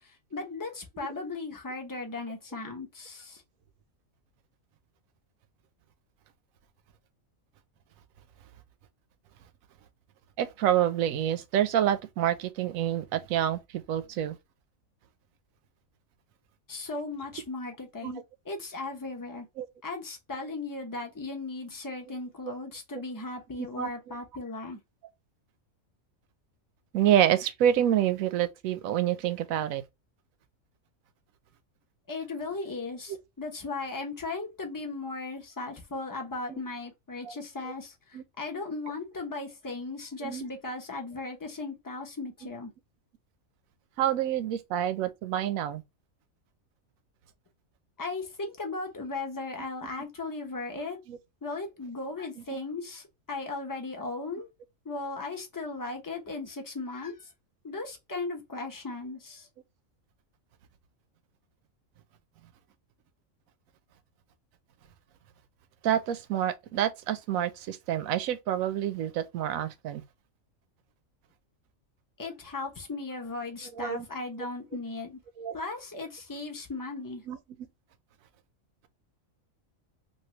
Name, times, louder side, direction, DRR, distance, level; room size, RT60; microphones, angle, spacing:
voice 1, 0.0-3.4 16.7-19.5 19.8-24.8 32.1-42.7 48.0-51.0 51.4-54.5 54.8-57.3 57.6-59.5 72.2-75.2 75.5-77.2, left 3 dB, 20° left, 0.6 m, -37 dB
voice 2, 10.4-14.4 18.0-18.1 19.6-19.7 23.6-23.9 26.9-29.8 36.5-36.6 37.2-37.3 38.1-38.2 40.2-40.4 44.0-45.8 51.1-51.2 65.8-70.0 73.8-74.1 75.4-75.5 77.3-77.4, right 11 dB, 90° right, 1.0 m, -27 dB
3.2 x 2.5 x 2.9 m
omnidirectional pair, 1.4 m